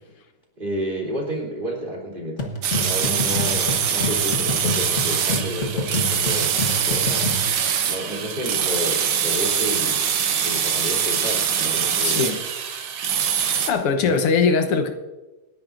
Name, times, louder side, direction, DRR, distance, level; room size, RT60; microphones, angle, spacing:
voice 1, 0.6-7.3 7.8-10.1 10.4-12.2 14.0-14.3, equal, 20° right, -2 dB, 3.5 m, -31 dB
sound 1, 2.4-7.5, left 1 dB, 35° left, 1.5 m, -28 dB
sound 2, 2.6-13.7, right 8 dB, 75° right, 1.9 m, -23 dB
voice 2, 12.0-12.4 13.4-14.9, left 5 dB, 90° left, 6 dB, 2.1 m, -21 dB
27.0 x 10.5 x 2.6 m, 1.1 s
omnidirectional pair, 2.4 m